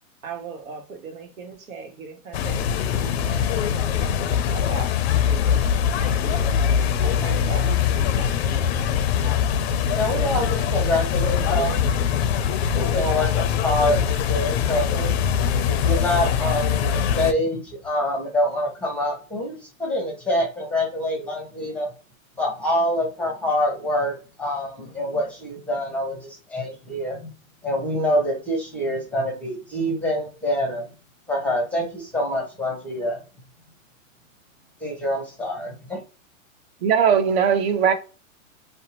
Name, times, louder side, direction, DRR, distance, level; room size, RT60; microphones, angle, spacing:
voice 1, 0.2-4.2 4.5-5.7 6.0-6.7 7.0-8.4, right 5 dB, 85° right, 1.0 m, -39 dB
sound 1, 2.3-17.3, left 8 dB, 50° left, 0.4 m, -22 dB
voice 2, 9.9-11.7 12.7-15.2 15.7-21.9 22.4-27.2 27.6-30.9 31.3-33.2 34.8-36.0, left 1 dB, 5° left, 0.6 m, -26 dB
voice 3, 36.8-37.9, right 7 dB, 50° right, 0.6 m, -19 dB
2.7 x 2.0 x 2.8 m
hypercardioid pair, 135°, 41 cm